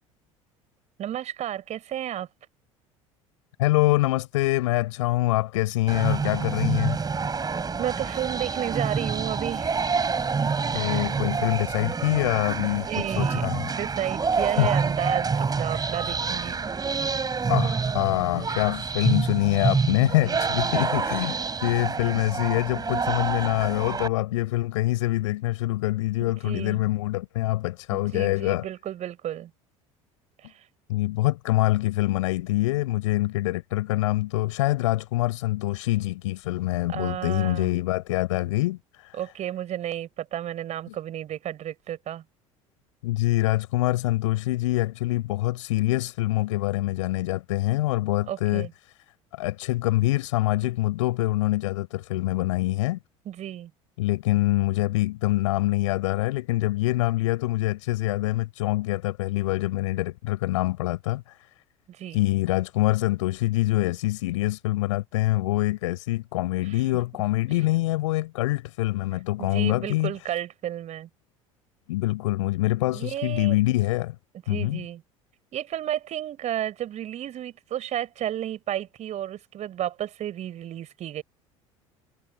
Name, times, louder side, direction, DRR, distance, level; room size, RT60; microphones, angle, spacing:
voice 1, 1.0-2.3 7.8-10.0 10.4-11.1 12.6-16.6 18.4-18.5 20.2-20.9 26.2-26.8 27.9-29.5 30.4-30.6 36.9-37.7 39.1-42.2 48.3-48.7 53.2-53.7 61.9-62.2 66.6-66.7 69.4-71.1 72.9-73.6 74.5-75.0 75.5-81.2, right 11 dB, 40° right, 4.7 m, -32 dB
voice 2, 3.6-7.0 10.7-13.7 14.6-14.7 17.5-28.7 30.9-39.2 43.0-48.7 49.3-53.0 54.0-61.5 62.1-70.1 71.9-74.2 74.5-74.8, left 17 dB, 65° left, 5.5 m, -25 dB
sound 1, 5.9-24.1, right 5 dB, 20° right, 5.3 m, -27 dB
figure-of-eight pair, 65°, 17 cm